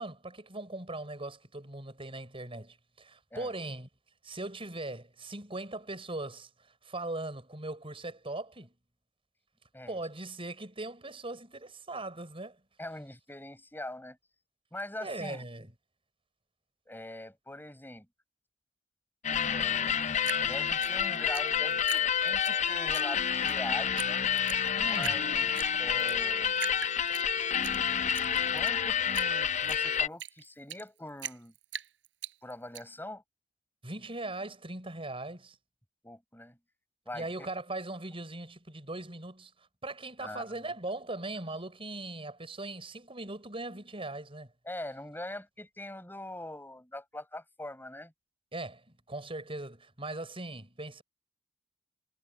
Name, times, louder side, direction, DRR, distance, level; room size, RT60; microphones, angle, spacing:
voice 1, 0.0-3.9 4.2-8.7 9.9-12.6 15.0-15.7 24.7-25.2 33.8-35.6 37.1-39.5 39.8-44.5 48.5-51.0, right 2 dB, 30° right, 6.4 m, -40 dB
voice 2, 12.8-14.2 14.7-15.4 16.9-18.1 19.4-20.0 20.4-24.2 24.8-26.6 28.5-31.5 32.4-33.2 36.0-36.6 37.1-37.5 40.2-40.7 44.6-48.1, left 1 dB, 10° left, 8.0 m, -42 dB
sound 1, 19.2-30.1, left 8 dB, 40° left, 0.6 m, -29 dB
Drip, 20.2-22.5 22.9-23.6 24.0-24.1 24.4-25.2 25.6-26.2 26.6-27.8 28.1-30.9 31.2-32.8, right 9 dB, 75° right, 5.9 m, -41 dB
head